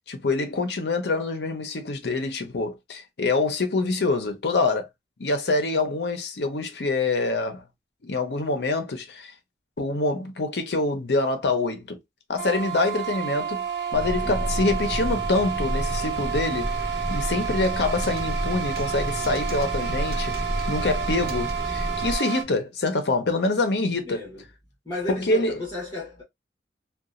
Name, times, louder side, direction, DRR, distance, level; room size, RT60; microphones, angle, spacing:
voice 1, 0.1-4.9 5.2-7.6 8.0-9.3 9.8-12.0 12.3-13.6 13.9-16.7 17.1-20.4 20.7-24.2 25.1-25.5, left 3 dB, 75° left, 0.7 m, -25 dB
sound 1, 12.4-22.4, right 8 dB, 85° right, 0.8 m, -30 dB
sound 2, 13.9-22.2, equal, 10° right, 0.3 m, -31 dB
sound 3, 17.6-18.2 18.8-18.9 19.2-19.7 20.1-20.7 21.3-21.5 22.4-22.5, right 3 dB, 55° right, 0.9 m, -44 dB
voice 2, 24.0-24.4 24.8-26.2, left 1 dB, 25° left, 1.2 m, -34 dB
2.9 x 2.3 x 2.4 m
head